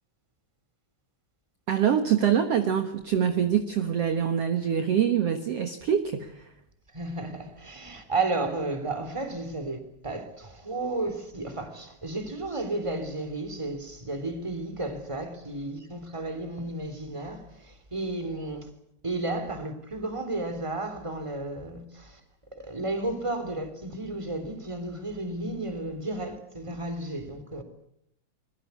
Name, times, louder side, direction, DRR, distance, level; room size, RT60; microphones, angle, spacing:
voice 1, 1.7-6.5, right 8 dB, 55° right, 2.1 m, -25 dB
voice 2, 6.9-18.7 19.0-22.2 22.5-27.6, right 2 dB, 10° right, 3.1 m, -33 dB
24.0 x 21.5 x 8.4 m
omnidirectional pair, 3.9 m